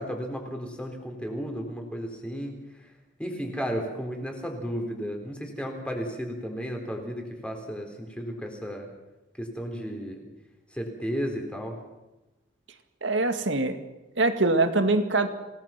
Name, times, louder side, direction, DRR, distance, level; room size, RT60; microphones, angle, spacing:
voice 1, 0.0-2.5 3.2-8.9 9.4-10.3 10.7-11.8, equal, 5° left, 3 dB, 4.0 m, -33 dB
voice 2, 13.0-13.8 14.2-15.3, right 2 dB, 75° right, 7 dB, 2.1 m, -23 dB
27.5 x 18.5 x 6.0 m, 1.1 s
head